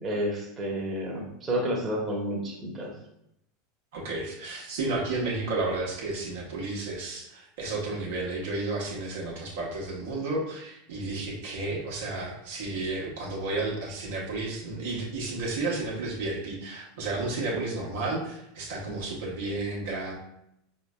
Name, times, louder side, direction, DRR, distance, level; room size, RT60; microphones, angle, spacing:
voice 1, 0.0-2.9, equal, 25° right, -2 dB, 1.0 m, -30 dB
voice 2, 3.9-20.1, right 2 dB, 65° right, -3 dB, 0.9 m, -32 dB
4.8 x 3.0 x 2.2 m, 0.79 s
figure-of-eight pair, 80°, 0 cm